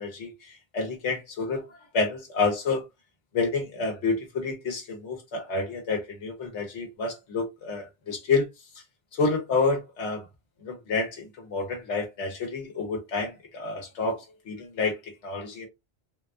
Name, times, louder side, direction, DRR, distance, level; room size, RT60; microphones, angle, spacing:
voice 1, 0.0-2.8 3.3-8.4 9.1-10.2 10.6-15.7, left 4 dB, 85° left, 1.2 m, -29 dB
3.7 x 2.3 x 2.5 m
omnidirectional pair, 1.2 m